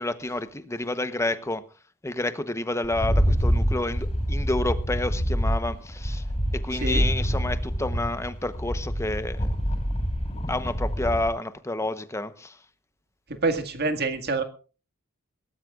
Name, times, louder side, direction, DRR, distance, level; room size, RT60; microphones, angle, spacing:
voice 1, 0.0-1.6 2.0-6.2 6.5-9.5 10.5-12.6, left 2 dB, 15° left, 11 dB, 1.0 m, -29 dB
Rattle, 2.8-11.3, equal, 30° left, 7.4 m, -26 dB
voice 2, 13.4-14.4, right 3 dB, 50° right, 7 dB, 1.9 m, -26 dB
21.5 x 18.0 x 2.5 m, 0.36 s
head